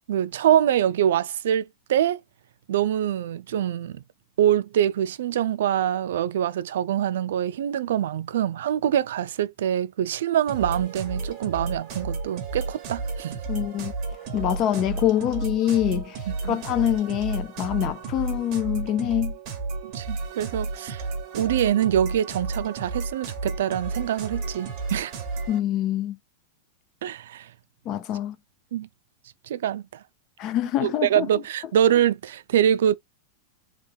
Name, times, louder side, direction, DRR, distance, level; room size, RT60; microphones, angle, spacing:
voice 1, 0.1-2.2 2.7-4.0 4.4-13.4 16.3-16.6 19.8-21.1 21.3-25.1 27.0-27.5 28.7-28.9 29.5-30.0 30.8-33.0, right 10 dB, 75° right, 0.4 m, -24 dB
sound 1, 10.5-25.6, right 3 dB, 30° right, 1.0 m, -32 dB
voice 2, 13.5-13.9 14.3-16.2 16.5-19.4 25.5-26.2 27.9-28.4 30.4-31.3, left 11 dB, 30° left, 0.4 m, -25 dB
3.3 x 2.3 x 3.4 m
supercardioid pair, 170°, 0 cm